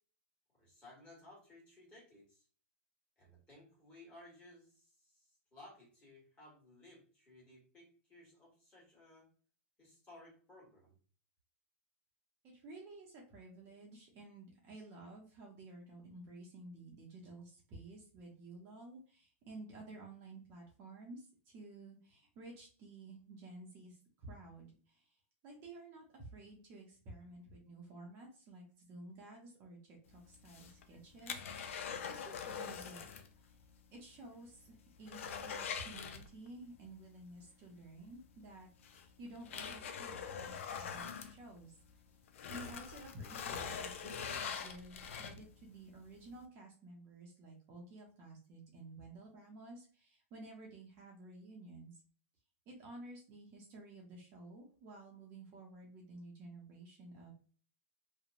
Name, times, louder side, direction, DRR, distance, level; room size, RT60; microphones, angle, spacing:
voice 1, 0.5-2.4 3.2-9.3 9.8-11.0, left 1 dB, 15° left, -5 dB, 1.5 m, -59 dB
voice 2, 12.4-25.2 25.4-33.0 33.4-33.6 33.9-42.0 42.5-52.0 52.7-57.3, right 2 dB, 35° right, -1 dB, 0.6 m, -53 dB
sound 1, 30.3-33.3 33.6-33.7 34.2-34.3 34.6-36.7 38.1-38.2 38.8-41.9 42.3-45.6 46.1-46.2, left 7 dB, 80° left, 0.4 m, -43 dB
2.9 x 2.1 x 2.5 m, 0.42 s
supercardioid pair, 150°, 7 cm